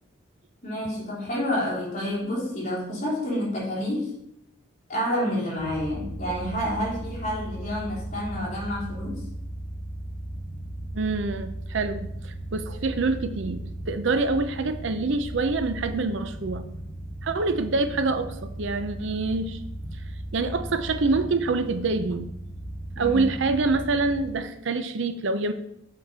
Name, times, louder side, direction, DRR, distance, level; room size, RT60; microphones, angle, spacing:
voice 1, 0.6-4.1 4.9-9.2 22.9-23.3, equal, 35° left, -5 dB, 3.2 m, -29 dB
sound 1, 5.6-24.2, right 1 dB, 15° right, 2.5 m, -37 dB
voice 2, 10.9-16.6 17.2-19.6 20.3-22.3 23.0-25.5, right 3 dB, 65° right, 10 dB, 0.6 m, -26 dB
7.3 x 5.9 x 4.7 m, 0.79 s
head